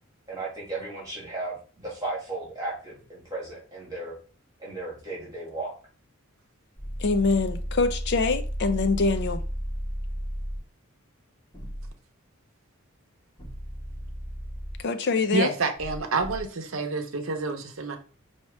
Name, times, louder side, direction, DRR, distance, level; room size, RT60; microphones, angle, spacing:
voice 1, 0.3-4.2 4.6-5.7, right 2 dB, 15° right, 1.5 m, -35 dB
sound 1, 6.8-10.6 11.5-11.9 13.4-14.8 15.8-16.4, equal, 20° left, 2.0 m, -33 dB
voice 2, 7.0-9.4 14.8-15.5, left 4 dB, 55° left, 0.5 m, -24 dB
voice 3, 15.3-18.0, right 3 dB, 65° right, 0.8 m, -28 dB
4.6 x 2.8 x 3.1 m
head